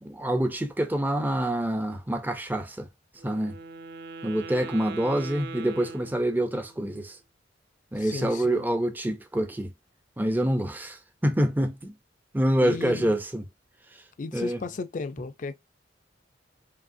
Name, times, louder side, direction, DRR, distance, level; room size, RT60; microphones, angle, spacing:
voice 1, 0.0-2.9 3.2-3.5 4.2-7.2 7.9-9.7 10.2-11.9 12.3-13.4 14.3-14.6, right 1 dB, 10° right, 0.5 m, -26 dB
Wind instrument woodwind instrument, 3.2-6.8, right 4 dB, 60° right, 0.5 m, -41 dB
voice 2, 8.0-8.6 12.6-13.1 14.2-15.5, left 4 dB, 45° left, 0.4 m, -35 dB
5.1 x 2.8 x 2.6 m
head